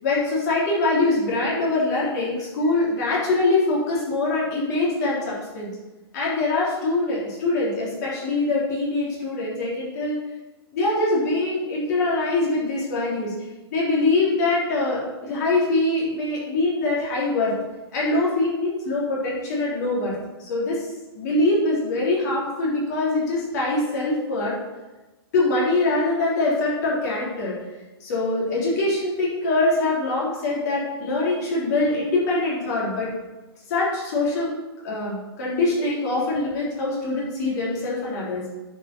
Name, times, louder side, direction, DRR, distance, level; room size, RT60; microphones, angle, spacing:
voice 1, 0.0-5.7 6.1-10.1 10.7-13.3 13.7-17.5 17.9-20.9 21.1-24.6 25.3-27.6 28.0-33.1 33.7-34.5 34.8-38.5, left 2 dB, 40° left, -5 dB, 3.4 m, -23 dB
9.4 x 5.4 x 5.3 m, 1.1 s
hypercardioid pair, 170°, 14 cm